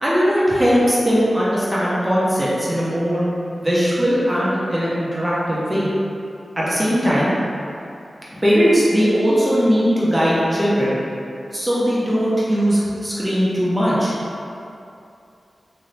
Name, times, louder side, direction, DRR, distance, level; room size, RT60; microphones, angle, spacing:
voice 1, 0.0-3.2 3.6-5.9 6.6-7.3 8.4-10.9 11.5-14.1, equal, 20° right, -8 dB, 0.8 m, -19 dB
2.7 x 2.7 x 3.2 m, 2.6 s
cardioid pair, 40°, 0 cm